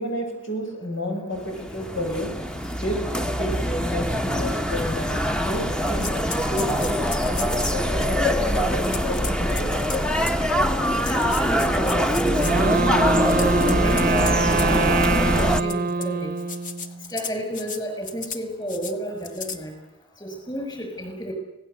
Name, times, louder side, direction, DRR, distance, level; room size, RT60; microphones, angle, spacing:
voice 1, 0.0-2.4 2.8-3.1 3.4-6.2 6.5-9.7, left 1 dB, 80° left, 2 dB, 7.6 m, -31 dB
sound 1, 1.4-15.6, equal, 5° left, 0.9 m, -23 dB
sound 2, 2.1-2.2 2.8-2.9 3.4-3.5 4.4-4.5 5.0-5.6 5.9-7.9 8.8-10.4 10.9-12.7 13.2-14.7 15.3-16.1 16.4-17.8 18.0-18.4 18.7-18.9 19.2-19.6, left 6 dB, 40° left, 1.7 m, -35 dB
voice 2, 11.0-16.3 17.1-19.7 20.2-21.3, right 1 dB, 20° left, 3 dB, 6.4 m, -31 dB
Wind instrument woodwind instrument, 12.2-17.1, right 4 dB, 45° right, 0.8 m, -24 dB
26.5 x 18.0 x 8.3 m, 0.90 s
head